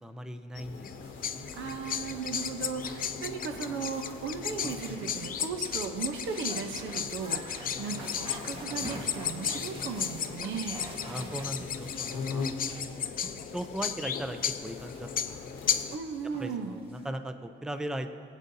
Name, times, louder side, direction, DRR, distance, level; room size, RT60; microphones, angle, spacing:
voice 1, 0.0-1.5 11.1-13.1 13.5-15.8 16.4-18.1, right 1 dB, 5° right, 8 dB, 0.5 m, -39 dB
sound 1, 0.5-16.0, left 4 dB, 75° left, 0.9 m, -43 dB
sound 2, 0.8-15.9, left 8 dB, 45° left, 0.5 m, -35 dB
sound 3, 1.0-17.1, right 1 dB, 25° right, 1.4 m, -47 dB
voice 2, 1.5-10.9 15.9-16.8, right 5 dB, 75° right, 6 dB, 0.9 m, -36 dB
19.0 x 8.3 x 2.7 m, 2.2 s
cardioid pair, 90°, 20 cm